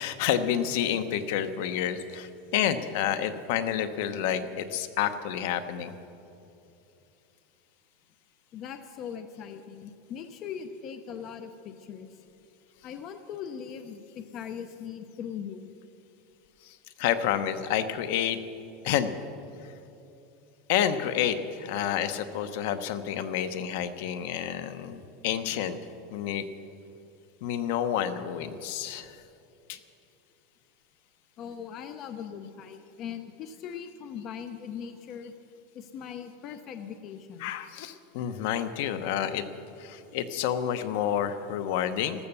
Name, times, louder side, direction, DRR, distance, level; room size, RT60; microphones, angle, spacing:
voice 1, 0.0-5.9 16.6-18.4 18.8-19.1 20.7-25.8 26.1-26.4 27.4-29.2 29.7-29.8 37.4-39.4 39.8-42.3, left 9 dB, 60° left, 10 dB, 0.9 m, -29 dB
voice 2, 8.5-12.2 12.8-15.7 24.9-25.0 31.4-35.3 35.7-37.5, left 8 dB, 35° left, 8 dB, 0.6 m, -40 dB
14.0 x 13.5 x 6.8 m, 2.8 s
supercardioid pair, 165°, 0 cm